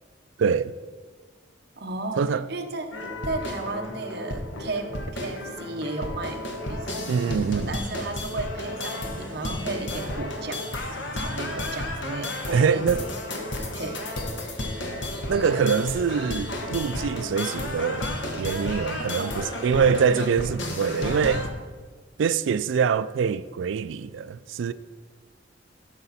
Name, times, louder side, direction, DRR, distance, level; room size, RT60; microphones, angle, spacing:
voice 1, 0.4-0.7 2.2-2.4 7.1-7.7 12.5-13.0 15.3-18.1 18.4-21.5 22.2-24.7, right 6 dB, 75° right, 0.3 m, -24 dB
voice 2, 1.8-7.1 7.5-12.8 13.6-14.3 18.7-19.7, right 2 dB, 55° right, 0.9 m, -34 dB
sound 1, 2.9-21.5, left 1 dB, 70° left, 1.2 m, -32 dB
12.0 x 5.8 x 4.1 m
head